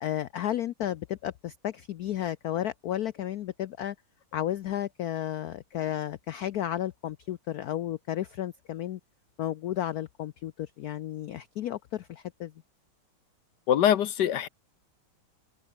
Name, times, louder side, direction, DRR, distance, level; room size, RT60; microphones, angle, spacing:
voice 1, 0.0-4.0 4.3-9.0 9.4-12.5, left 12 dB, 90° left, 0.8 m, -33 dB
voice 2, 13.7-14.5, left 10 dB, 60° left, 1.3 m, -23 dB
omnidirectional pair, 2.3 m